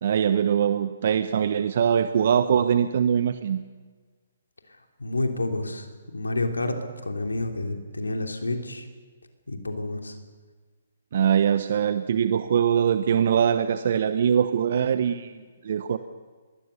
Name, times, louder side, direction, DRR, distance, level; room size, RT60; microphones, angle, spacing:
voice 1, 0.0-3.6 11.1-16.0, right 8 dB, 55° right, 10 dB, 1.0 m, -22 dB
voice 2, 5.0-5.9 6.1-8.9 9.5-10.2, left 2 dB, 80° left, 4 dB, 3.4 m, -29 dB
25.5 x 21.5 x 6.8 m, 1.5 s
figure-of-eight pair, 130°, 0 cm